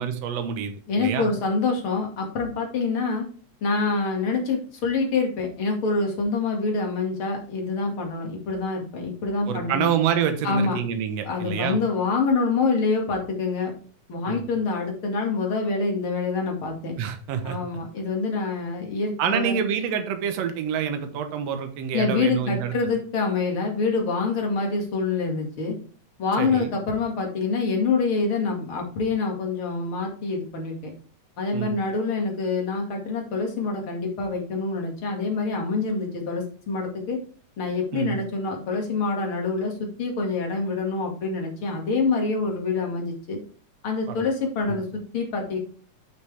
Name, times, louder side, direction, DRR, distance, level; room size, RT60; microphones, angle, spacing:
voice 1, 0.0-1.3 9.5-11.8 14.3-14.4 17.0-17.6 19.2-22.7 26.4-26.7 31.5-31.7 37.9-38.1 44.2-44.3 44.7-44.8, right 8 dB, 65° right, 7 dB, 2.2 m, -27 dB
voice 2, 0.9-3.3 3.6-9.9 10.4-10.8 11.2-13.7 14.1-16.9 17.4-19.6 21.9-25.8 26.2-30.9 31.4-37.2 37.6-43.4 43.8-45.6, left 4 dB, 45° left, 1 dB, 2.8 m, -26 dB
9.6 x 5.9 x 3.5 m, 0.43 s
omnidirectional pair, 3.4 m